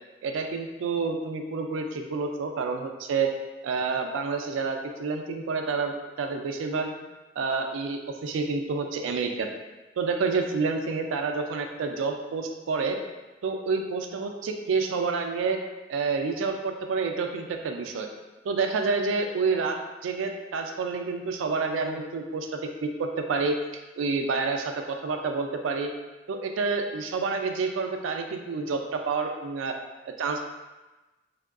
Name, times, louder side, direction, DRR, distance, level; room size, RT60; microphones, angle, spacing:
voice 1, 0.2-3.3 3.6-6.9 7.4-9.5 10.0-13.0 13.4-15.6 15.9-18.1 18.4-23.6 24.0-25.9 26.3-29.8 30.2-30.4, right 4 dB, 90° right, 4 dB, 0.3 m, -28 dB
3.5 x 2.2 x 2.4 m, 1.1 s
head